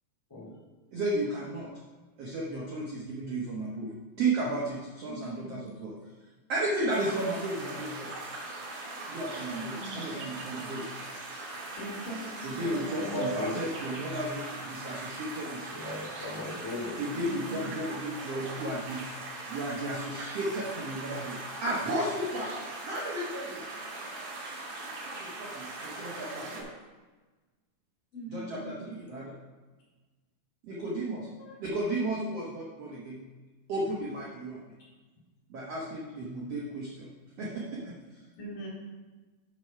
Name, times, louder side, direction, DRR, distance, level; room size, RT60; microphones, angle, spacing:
voice 1, 0.9-1.7 2.2-3.9 4.2-5.9 6.5-8.1 9.1-10.9 12.4-15.8 17.0-19.0 19.5-23.6 25.1-26.7 28.3-29.3 30.6-31.3 31.6-33.2 33.7-34.6 35.5-37.1 37.4-38.2, right 1 dB, 75° right, -5 dB, 1.4 m, -34 dB
voice 2, 5.1-5.6 9.5-10.0 11.8-12.9 17.2-17.8 28.1-28.7 38.4-38.7, right 1 dB, 55° left, -5 dB, 4.1 m, -40 dB
sound 1, 6.9-26.6, right 2 dB, 55° right, 2.9 m, -40 dB
voice 3, 12.7-13.7 15.7-17.0 31.4-31.6, left 1 dB, 10° left, -6 dB, 1.5 m, -37 dB
7.0 x 6.5 x 5.8 m, 1.3 s
omnidirectional pair, 4.8 m